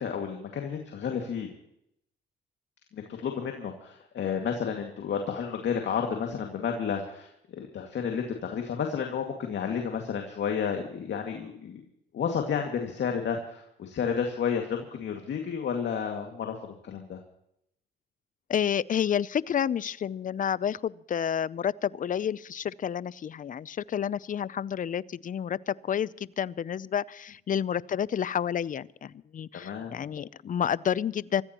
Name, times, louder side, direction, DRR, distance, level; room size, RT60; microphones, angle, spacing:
voice 1, 0.0-1.5 2.9-11.8 12.1-16.5 16.8-17.2 29.5-29.9, left 7 dB, 65° left, 3 dB, 2.3 m, -31 dB
voice 2, 18.5-31.4, left 9 dB, 40° left, 20 dB, 0.6 m, -30 dB
25.5 x 14.5 x 3.0 m, 0.75 s
cardioid pair, 90°, 20 cm